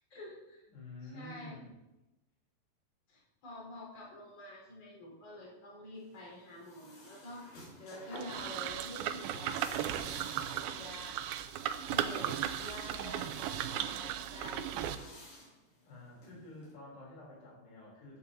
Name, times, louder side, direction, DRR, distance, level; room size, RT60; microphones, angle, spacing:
voice 1, 0.0-0.6 1.0-1.6 3.1-7.5 7.8-11.2 11.8-14.8, left 1 dB, 35° left, -3 dB, 5.4 m, -48 dB
voice 2, 0.7-1.7 15.9-18.2, left 2 dB, 75° left, -4 dB, 5.6 m, -50 dB
sound 1, 6.0-16.7, left 1 dB, 60° left, 6.5 m, -55 dB
sound 2, 8.2-15.0, right 11 dB, 80° right, 2.3 m, -36 dB
15.0 x 12.5 x 2.8 m, 0.99 s
omnidirectional pair, 4.8 m